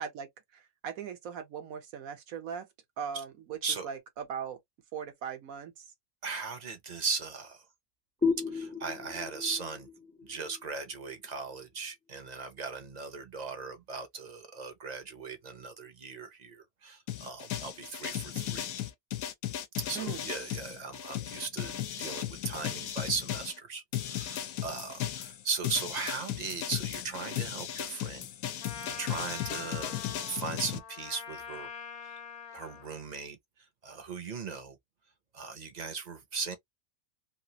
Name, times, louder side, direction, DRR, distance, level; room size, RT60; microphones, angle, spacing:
voice 1, 0.0-2.7 3.0-3.6 3.8-4.6 4.9-5.9 19.9-20.3, right 7 dB, 80° right, 1.3 m, -39 dB
voice 2, 6.2-7.6 8.5-9.9 10.2-18.7 19.8-31.7 32.0-32.1 32.5-33.4 33.8-34.8 35.3-36.6, right 5 dB, 40° right, 0.6 m, -38 dB
sound 1, 8.2-11.6, left 5 dB, 15° left, 0.3 m, -34 dB
sound 2, 17.1-23.6 23.9-30.8, left 12 dB, 90° left, 1.1 m, -36 dB
Trumpet, 28.6-32.9, left 6 dB, 60° left, 1.1 m, -44 dB
3.1 x 2.4 x 2.8 m
omnidirectional pair, 1.4 m